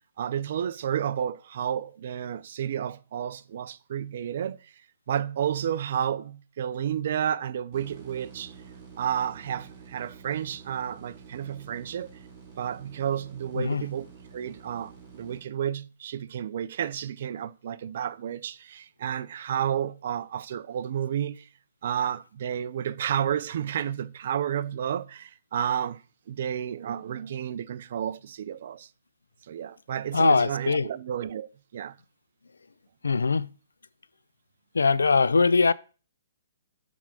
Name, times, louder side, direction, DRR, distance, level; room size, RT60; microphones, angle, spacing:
voice 1, 0.2-4.7 5.1-8.5 9.0-12.1 12.6-21.5 21.8-26.0 26.3-28.9 29.5-32.0, right 9 dB, 60° right, 0.4 m, -31 dB
sound 1, 7.7-15.4, right 6 dB, 35° right, 4.4 m, -49 dB
voice 2, 13.6-13.9 30.1-30.9 33.0-33.5 34.7-35.7, left 4 dB, 90° left, 0.4 m, -21 dB
7.2 x 3.5 x 6.1 m
hypercardioid pair, 135°, 0 cm